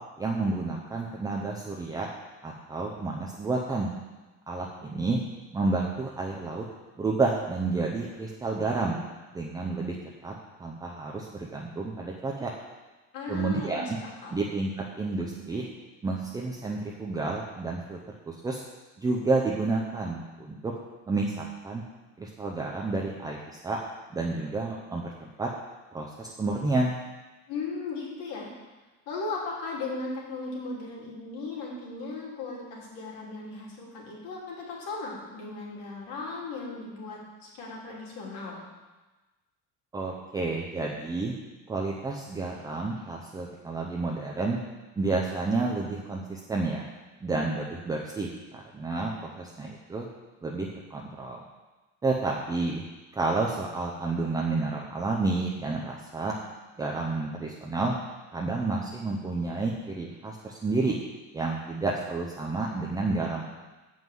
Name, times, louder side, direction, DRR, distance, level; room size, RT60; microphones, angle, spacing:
voice 1, 0.2-2.1 2.4-3.9 4.5-5.2 5.5-6.7 7.0-9.0 9.3-10.0 10.2-10.3 10.6-12.5 13.3-13.9 14.3-15.7 16.0-18.0 18.3-18.6 19.0-20.7 21.1-21.8 22.2-23.8 24.1-25.5 25.9-26.9 39.9-41.3 41.7-44.6 45.0-46.9 47.2-50.1 50.4-51.4 52.0-52.8 53.1-56.3 56.8-58.0 58.3-61.0 61.3-63.5, right 3 dB, 10° right, -2 dB, 0.5 m, -30 dB
voice 2, 13.1-14.4 27.5-28.5 29.1-38.6, left 3 dB, 75° left, -4 dB, 3.2 m, -37 dB
7.7 x 5.5 x 7.6 m, 1.2 s
cardioid pair, 180°, 35 cm